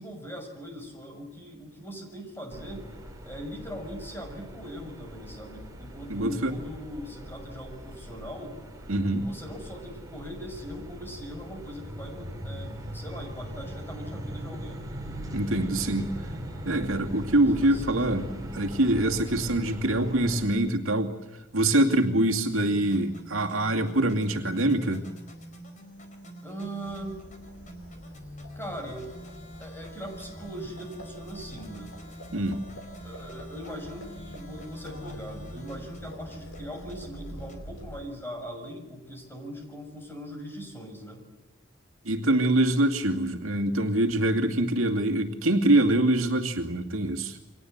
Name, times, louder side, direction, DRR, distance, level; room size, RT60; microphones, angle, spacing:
voice 1, 0.0-2.9 3.2-8.6 9.2-14.8 17.6-18.3 26.4-27.2 28.5-29.1 29.6-31.9 33.0-41.2, equal, 10° left, 3 dB, 6.3 m, -40 dB
sound 1, 2.5-20.5, equal, 15° right, 4.6 m, -40 dB
voice 2, 6.1-6.6 8.9-9.3 15.3-16.1 16.7-21.1 21.5-25.0 32.3-32.6 42.0-47.4, right 1 dB, 75° right, 3 dB, 2.4 m, -24 dB
sound 2, 22.6-37.6, right 1 dB, 40° left, 4.5 m, -45 dB
Livestock farm animals working animals, 26.8-38.3, equal, 70° left, 5.8 m, -46 dB
29.5 x 24.0 x 8.1 m, 0.99 s
head